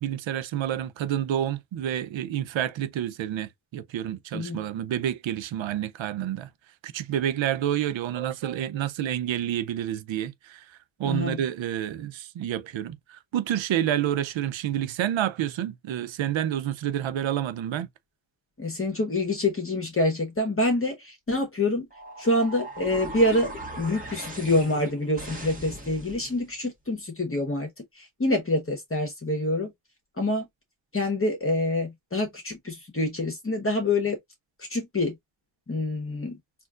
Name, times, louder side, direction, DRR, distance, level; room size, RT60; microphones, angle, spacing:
voice 1, 0.0-6.5 6.8-10.6 11.0-17.9, right 11 dB, 90° right, 0.6 m, -29 dB
voice 2, 11.0-11.4 18.6-21.9 22.2-27.7 27.9-29.7 30.2-30.5 30.9-34.2 34.6-35.2 35.7-36.4, left 2 dB, 30° left, 1.2 m, -26 dB
sound 1, 21.9-26.5, right 1 dB, 20° right, 1.4 m, -39 dB
4.2 x 2.7 x 2.4 m
wide cardioid pair, 95°, 45 cm